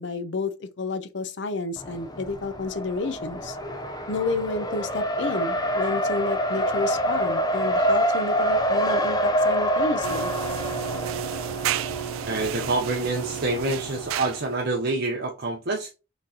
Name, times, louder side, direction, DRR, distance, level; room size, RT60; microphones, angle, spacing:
voice 1, 0.0-3.6 4.1-10.3, left 3 dB, 60° left, 0.6 m, -30 dB
Race car auto racing, 1.8-14.4, equal, 20° left, 0.5 m, -27 dB
sound 1, 10.0-14.7, right 10 dB, 85° right, 0.3 m, -32 dB
voice 2, 12.3-15.9, right 2 dB, 50° right, 0.6 m, -27 dB
5.9 x 3.2 x 2.7 m
head